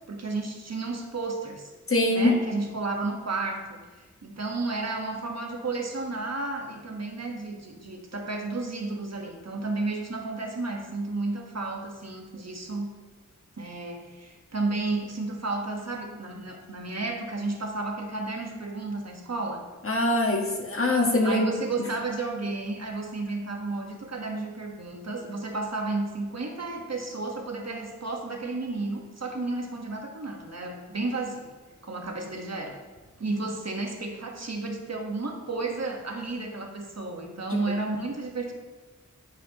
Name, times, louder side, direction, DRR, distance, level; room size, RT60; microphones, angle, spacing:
voice 1, 0.1-1.7 2.1-12.9 13.6-19.6 21.2-31.5 31.8-32.8 33.2-38.5, right 3 dB, 60° right, 2 dB, 1.4 m, -32 dB
voice 2, 1.9-2.3 19.8-21.5 21.8-21.9 37.5-37.6, left 2 dB, 45° left, 1 dB, 1.4 m, -23 dB
9.4 x 8.3 x 2.9 m, 1.3 s
wide cardioid pair, 55°, 30 cm